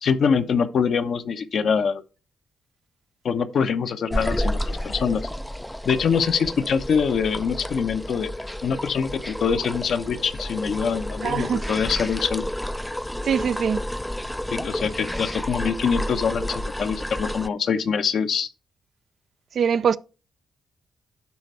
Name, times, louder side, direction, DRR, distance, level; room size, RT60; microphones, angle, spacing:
voice 1, 0.0-2.0 3.2-5.3 5.8-8.3 8.6-12.5 14.5-18.5, left 6 dB, 65° left, 0.8 m, -24 dB
sound 1, 4.1-17.5, equal, 5° left, 0.4 m, -31 dB
voice 2, 11.2-11.6 13.2-13.8 19.5-20.0, right 7 dB, 60° right, 0.4 m, -22 dB
12.0 x 4.0 x 4.5 m
hypercardioid pair, 40°, 0 cm